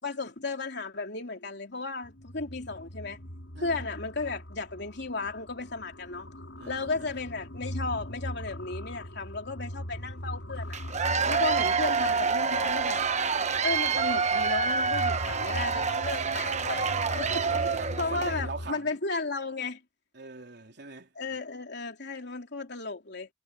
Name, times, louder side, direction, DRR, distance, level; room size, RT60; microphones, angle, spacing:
voice 1, 0.0-3.2 3.6-6.3 6.7-10.8 11.3-13.0 13.6-17.5 18.0-19.8 21.1-23.3, left 3 dB, 65° left, 3.3 m, -34 dB
sound 1, 2.0-18.7, equal, 85° left, 4.4 m, -40 dB
voice 2, 6.6-7.1 11.2-11.5 17.5-19.0 20.1-21.1, right 3 dB, 65° right, 3.5 m, -42 dB
Cheering / Applause / Crowd, 10.7-18.4, right 5 dB, 40° right, 1.0 m, -27 dB
head